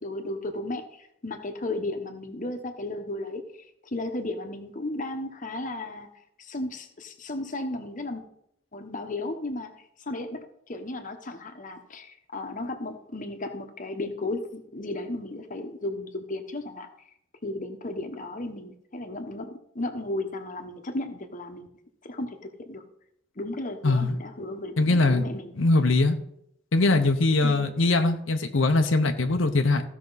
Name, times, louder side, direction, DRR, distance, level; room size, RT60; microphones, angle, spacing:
voice 1, 0.0-3.4 3.8-6.1 6.4-8.2 8.7-9.7 10.0-16.9 17.4-21.7 22.0-22.8 23.4-25.5 27.4-27.7, left 2 dB, 40° left, 6 dB, 1.1 m, -34 dB
voice 2, 23.8-24.2 24.8-25.3 25.6-26.2 26.7-29.8, left 2 dB, 75° left, 5 dB, 0.8 m, -22 dB
15.5 x 6.0 x 4.0 m, 0.73 s
head